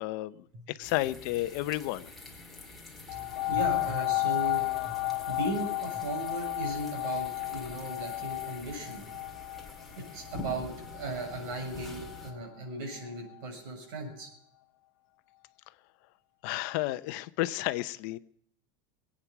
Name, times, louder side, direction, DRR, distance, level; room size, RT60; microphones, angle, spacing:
voice 1, 0.0-2.1 16.4-18.2, left 17 dB, 55° left, 14 dB, 0.7 m, -32 dB
sound 1, 0.8-12.3, left 2 dB, ahead, 2.2 m, -47 dB
sound 2, 3.1-12.3 13.0-13.1, left 21 dB, 90° left, 0.9 m, -33 dB
voice 2, 3.1-9.1 10.0-14.3, right 2 dB, 60° right, 2 dB, 6.3 m, -37 dB
21.0 x 8.9 x 6.0 m, 0.67 s
supercardioid pair, 165°, 12 cm